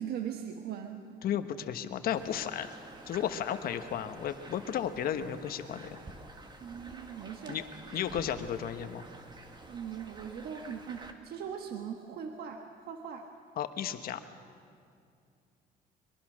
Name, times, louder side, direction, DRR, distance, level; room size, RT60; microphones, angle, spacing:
voice 1, 0.0-1.0 6.6-7.6 8.0-8.1 9.6-13.3, right 8 dB, 65° right, 4 dB, 1.4 m, -40 dB
voice 2, 1.2-2.7 3.1-6.0 7.5-7.6 7.9-9.1 13.6-14.2, left 9 dB, 60° left, 9 dB, 1.3 m, -34 dB
sound 1, 2.1-11.1, right 2 dB, 25° right, 2.0 m, -50 dB
23.0 x 22.5 x 6.4 m, 2.4 s
cardioid pair, 110°, 17 cm